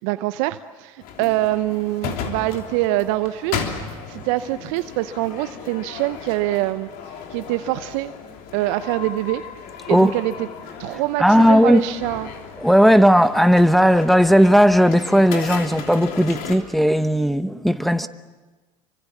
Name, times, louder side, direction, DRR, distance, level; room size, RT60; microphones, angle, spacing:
voice 1, 0.0-3.7 4.1-6.9 7.3-8.1 8.5-9.4 9.9-10.5 10.8-12.3, right 17 dB, 65° right, 0.7 m, -24 dB
sound 1, 1.0-16.6, left 7 dB, 60° left, 3.2 m, -35 dB
voice 2, 11.2-11.8 12.6-18.1, equal, ahead, 1.0 m, -16 dB
27.5 x 24.5 x 7.3 m
hypercardioid pair, 75°, 17 cm